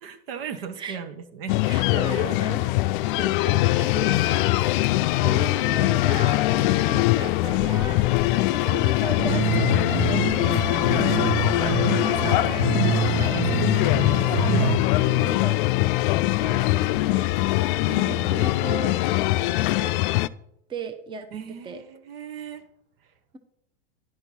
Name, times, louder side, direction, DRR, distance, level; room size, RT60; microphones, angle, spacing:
voice 1, 0.0-1.6 2.2-2.7 3.2-4.0 6.7-7.1 10.8-11.1 15.0-15.6 17.9-18.4 21.3-22.7, right 7 dB, 70° right, 9 dB, 1.2 m, -38 dB
sound 1, 1.5-20.3, left 18 dB, 60° left, 0.4 m, -22 dB
voice 2, 1.6-2.9 3.8-4.5 5.2-11.8 12.1-15.0 15.4-15.7 16.4-17.3 17.9-19.0 19.8-19.9 20.7-21.3 21.6-21.8, right 3 dB, 15° right, 9 dB, 0.8 m, -37 dB
sound 2, 9.2-14.8, right 11 dB, 55° right, 0.9 m, -27 dB
10.5 x 4.5 x 5.5 m, 0.76 s
hypercardioid pair, 115°, 30 cm